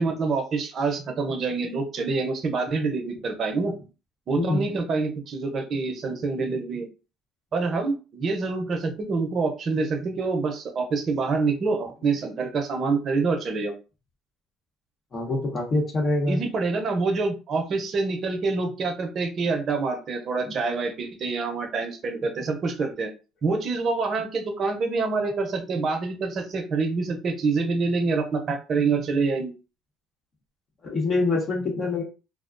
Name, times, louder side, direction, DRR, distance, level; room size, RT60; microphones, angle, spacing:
voice 1, 0.0-3.7 4.3-6.9 7.5-13.7 16.3-23.1 23.4-29.5, right 4 dB, 45° right, 4 dB, 0.7 m, -26 dB
voice 2, 4.3-4.8 15.1-16.4 30.8-32.0, left 2 dB, 40° left, 0 dB, 0.9 m, -25 dB
2.3 x 2.1 x 2.5 m, 0.32 s
supercardioid pair, 95°, 0 cm